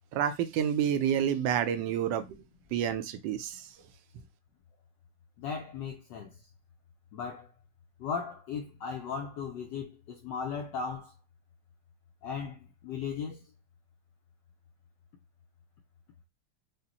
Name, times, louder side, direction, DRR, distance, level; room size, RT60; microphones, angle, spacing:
voice 1, 0.1-2.4 2.7-3.7, right 9 dB, 75° right, 1.1 m, -29 dB
voice 2, 5.4-6.3 7.1-7.5 8.0-11.1 12.2-13.4, left 6 dB, 80° left, 1.0 m, -37 dB
5.0 x 2.1 x 2.8 m
omnidirectional pair, 2.4 m